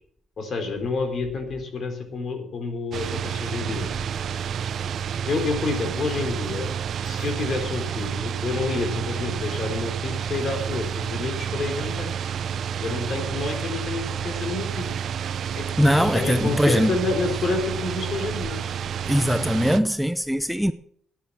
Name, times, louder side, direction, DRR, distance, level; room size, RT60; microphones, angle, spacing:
voice 1, 0.4-3.9 5.3-6.7 7.0-12.1 12.8-14.9 15.6-18.6, left 3 dB, 55° left, 3.9 m, -29 dB
sound 1, 2.9-19.8, right 7 dB, 65° right, 0.7 m, -29 dB
voice 2, 15.8-17.0 19.1-20.7, equal, ahead, 0.6 m, -21 dB
13.0 x 9.3 x 7.4 m
cardioid pair, 90°, 0 cm